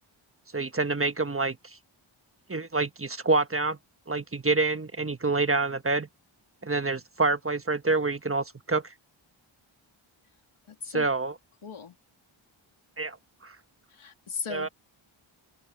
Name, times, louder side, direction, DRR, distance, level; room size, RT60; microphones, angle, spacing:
voice 1, 0.5-1.6 2.5-3.8 4.1-6.1 6.6-8.9 10.9-11.3 13.0-13.2 13.4-13.6 14.5-14.7, right 3 dB, 25° right, 1.3 m, -27 dB
voice 2, 10.7-11.1 11.6-12.0 13.9-14.7, left 6 dB, 85° left, 2.8 m, -37 dB
open air
wide cardioid pair, 75°, 48 cm